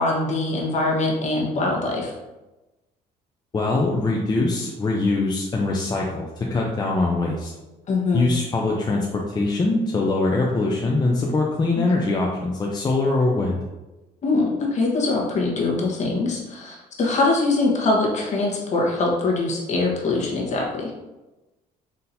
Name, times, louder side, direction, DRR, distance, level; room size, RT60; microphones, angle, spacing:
voice 1, 0.0-2.1 7.9-8.3 11.8-11.9 14.2-20.9, left 2 dB, 45° left, -2 dB, 1.2 m, -23 dB
voice 2, 3.5-7.5 8.1-13.6, left 2 dB, 25° left, -2 dB, 0.6 m, -22 dB
4.2 x 3.8 x 2.6 m, 1.1 s
cardioid pair, 110°, 17 cm